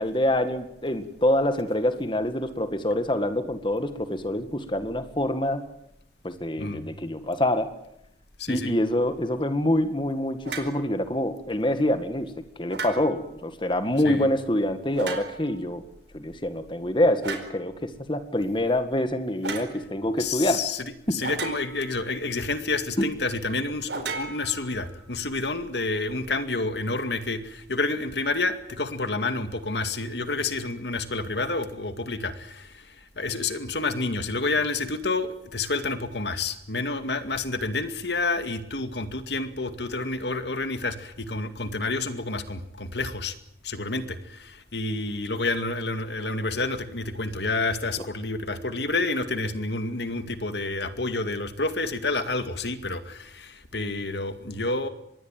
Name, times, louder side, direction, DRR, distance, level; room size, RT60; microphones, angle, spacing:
voice 1, 0.0-5.6 6.2-7.7 8.5-12.3 12.6-15.8 16.1-20.6 21.1-21.2 23.0-23.1, left 1 dB, 25° left, 9 dB, 1.9 m, -26 dB
voice 2, 8.4-8.7 14.0-14.3 20.1-43.4 43.6-54.9, left 3 dB, 75° left, 9 dB, 2.2 m, -29 dB
sound 1, 10.4-10.8 12.7-13.3 14.9-15.6 17.2-17.6 19.4-19.7 21.2-22.0 23.9-25.0, right 4 dB, 80° right, 4.5 m, -35 dB
25.5 x 21.5 x 9.1 m, 0.79 s
head